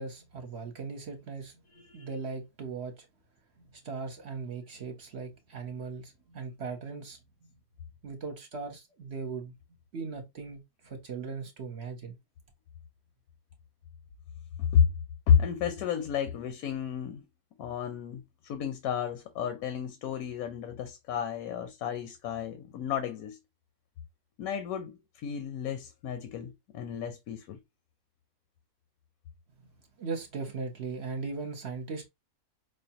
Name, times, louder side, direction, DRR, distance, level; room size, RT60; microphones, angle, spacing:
voice 1, 0.0-1.5 1.9-2.9 3.8-7.2 8.0-9.5 9.9-12.1 30.0-32.1, right 4 dB, 55° right, 0.9 m, -38 dB
voice 2, 1.7-2.1 14.6-14.9 15.3-17.2 17.6-23.4 24.4-27.6, left 8 dB, 80° left, 1.1 m, -31 dB
4.8 x 2.3 x 2.8 m
omnidirectional pair, 1.5 m